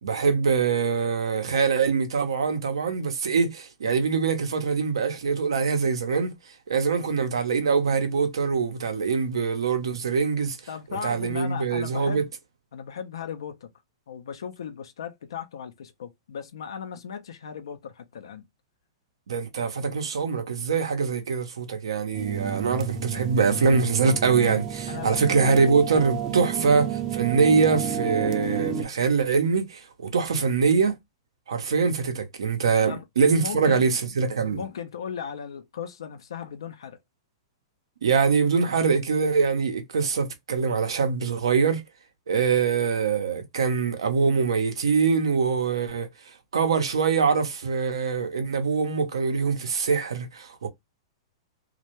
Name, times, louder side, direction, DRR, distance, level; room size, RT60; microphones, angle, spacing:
voice 1, 0.0-10.6 10.9-12.2 19.3-31.0 31.5-34.6 38.0-41.8 42.3-50.7, right 5 dB, 85° right, 0.6 m, -24 dB
voice 2, 10.7-12.3 12.7-13.7 14.1-18.4 23.1-23.2 24.9-25.3 26.6-26.7 32.9-33.0 33.4-33.9 34.4-37.0, left 7 dB, 80° left, 0.4 m, -37 dB
sound 1, 22.1-28.8, right 8 dB, 25° right, 0.4 m, -31 dB
2.1 x 2.1 x 2.8 m
hypercardioid pair, 130°, 3 cm